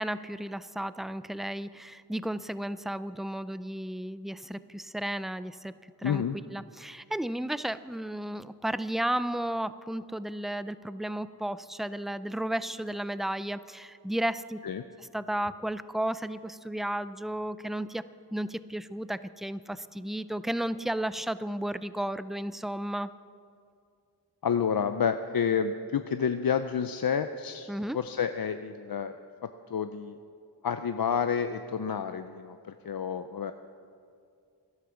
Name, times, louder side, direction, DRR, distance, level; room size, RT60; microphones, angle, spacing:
voice 1, 0.0-5.7 6.0-6.2 6.5-14.6 15.1-18.0 18.3-23.1 27.7-28.0, right 1 dB, ahead, 15 dB, 0.4 m, -33 dB
voice 2, 6.0-6.4 14.6-14.8 24.4-29.2 29.4-30.2 30.6-33.5, left 7 dB, 60° left, 9 dB, 0.6 m, -29 dB
14.0 x 11.0 x 7.1 m, 2.3 s
wide cardioid pair, 60°, 41 cm